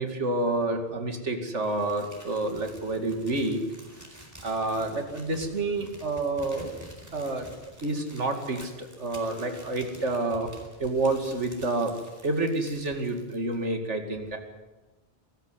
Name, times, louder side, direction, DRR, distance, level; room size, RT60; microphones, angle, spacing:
voice 1, 0.0-3.6 4.4-6.7 7.1-7.5 7.8-10.5 10.8-11.9 12.2-14.4, right 2 dB, 80° right, 5 dB, 2.7 m, -29 dB
Crumpling crinkling, 1.6-13.7, equal, 15° right, 4.2 m, -49 dB
23.0 x 14.0 x 9.6 m, 1.1 s
omnidirectional pair, 1.2 m